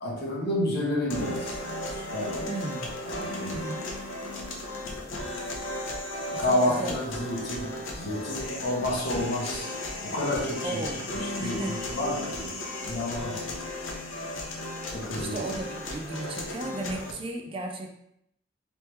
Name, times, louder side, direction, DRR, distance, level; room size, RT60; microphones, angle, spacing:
voice 1, 0.0-1.6 1.9-2.5 3.1-3.6 6.4-9.7 10.0-10.9 11.1-12.5 12.8-13.5 14.9-15.4, left 1 dB, 55° left, -2 dB, 0.9 m, -30 dB
sound 1, 1.1-17.1, left 1 dB, 85° left, 0.7 m, -35 dB
voice 2, 2.5-2.9 3.5-4.0 6.3-7.0 10.6-11.1 11.4-11.8 15.1-17.9, right 2 dB, 30° right, 3 dB, 0.3 m, -35 dB
3.2 x 3.1 x 3.1 m, 0.75 s
head